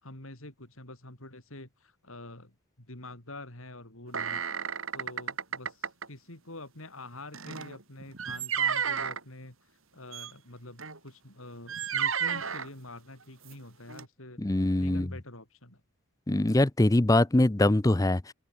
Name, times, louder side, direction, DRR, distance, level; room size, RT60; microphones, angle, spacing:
voice 1, 0.0-2.5 2.8-14.4 14.8-15.8, left 2 dB, 70° left, 5.3 m, -46 dB
sound 1, 4.1-6.1 7.3-9.2 10.1-10.3 10.8-11.0 11.7-12.7 13.5-13.6 13.9-14.0, right 7 dB, 65° right, 4.1 m, -32 dB
voice 2, 14.4-15.1 16.3-18.3, left 1 dB, 15° left, 0.5 m, -23 dB
head